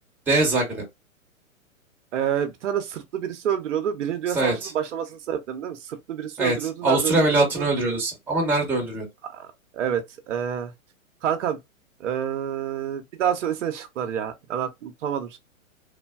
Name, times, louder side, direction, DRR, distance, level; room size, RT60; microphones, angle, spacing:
voice 1, 0.3-0.8 4.3-4.7 6.4-9.1, right 2 dB, 5° right, 0.8 m, -22 dB
voice 2, 2.1-7.7 9.2-9.5 9.7-10.7 11.2-11.6 12.0-15.4, right 9 dB, 60° right, 0.6 m, -28 dB
3.3 x 2.2 x 2.2 m
hypercardioid pair, 125°, 42 cm